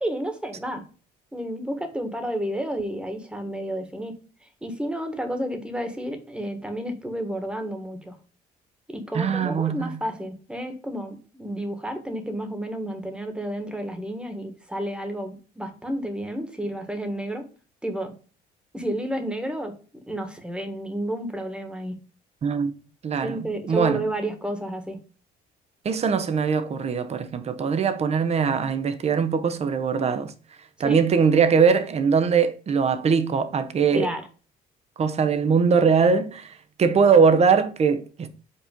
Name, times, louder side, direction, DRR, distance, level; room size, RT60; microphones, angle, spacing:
voice 1, 0.0-0.8 1.3-4.2 4.6-8.2 8.9-17.4 17.8-18.1 18.7-19.7 20.1-22.0 23.2-25.0 30.8-31.0 33.9-34.2, right 1 dB, 5° right, 1.5 m, -31 dB
voice 2, 9.1-10.0 22.4-22.7 23.0-23.4 23.7-24.0 25.8-30.3 30.8-34.1 35.0-38.3, right 5 dB, 40° right, 0.9 m, -21 dB
5.5 x 4.3 x 5.1 m
cardioid pair, 110°, 17 cm